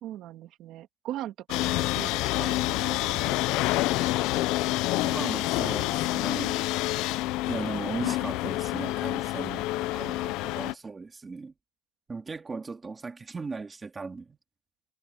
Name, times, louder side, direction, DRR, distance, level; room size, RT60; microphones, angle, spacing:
voice 1, 0.0-3.4, right 13 dB, 40° right, 1.9 m, -40 dB
sound 1, 1.5-10.7, left 18 dB, 45° left, 0.7 m, -28 dB
voice 2, 5.0-6.6 7.5-11.5 12.1-14.4, right 4 dB, 10° right, 2.4 m, -37 dB
cardioid pair, 175°, 0 cm